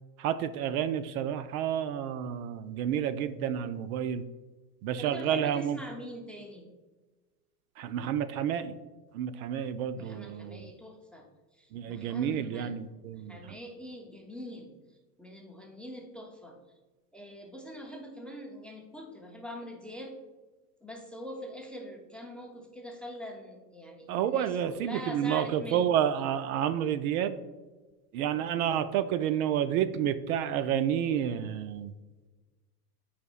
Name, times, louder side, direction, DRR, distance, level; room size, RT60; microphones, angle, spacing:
voice 1, 0.2-4.2 4.8-5.8 7.8-8.8 9.1-10.7 11.7-13.6 24.1-27.4 28.1-31.9, right 9 dB, 60° right, 12 dB, 0.5 m, -30 dB
voice 2, 5.0-6.7 9.9-11.3 11.5-12.8 13.1-14.7 15.2-16.6 17.1-20.1 20.8-26.0 28.3-28.5, left 1 dB, ahead, 1 dB, 0.5 m, -44 dB
8.0 x 5.0 x 2.4 m, 1.3 s
supercardioid pair, 120°, 48 cm